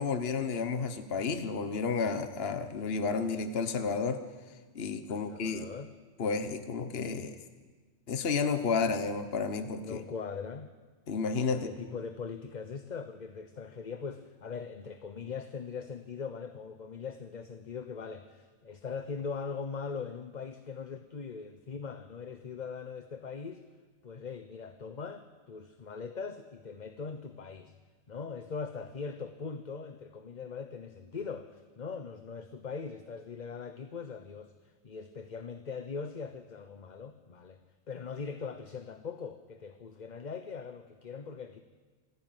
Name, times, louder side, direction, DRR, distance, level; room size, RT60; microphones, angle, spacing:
voice 1, 0.0-4.2 4.7-5.7 6.2-7.4 8.1-10.0 11.1-11.7, left 5 dB, 55° left, 9 dB, 1.4 m, -31 dB
voice 2, 5.1-5.9 9.8-10.7 11.6-23.6 24.0-27.7 28.1-37.6 37.9-41.6, left 5 dB, 40° left, 9 dB, 1.0 m, -41 dB
26.5 x 15.0 x 9.3 m, 1.4 s
omnidirectional pair, 1.2 m